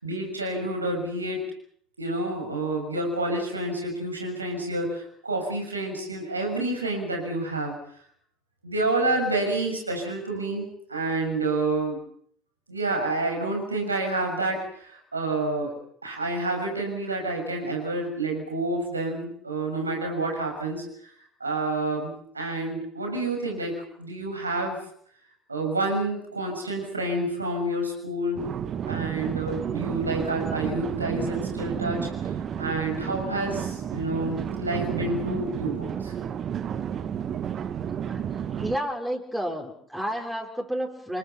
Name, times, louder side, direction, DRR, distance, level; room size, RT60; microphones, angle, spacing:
voice 1, 0.0-1.4 2.0-7.7 8.6-12.0 12.7-15.7 16.0-21.1 21.4-24.8 25.5-28.5 28.9-32.3 32.6-36.1, right 2 dB, 85° right, 2 dB, 6.9 m, -29 dB
sound 1, 28.4-38.8, right 8 dB, 40° right, 1.2 m, -31 dB
voice 2, 38.6-41.2, equal, 5° right, 0 dB, 5.3 m, -31 dB
29.0 x 23.0 x 5.9 m, 0.65 s
figure-of-eight pair, 65°, 0 cm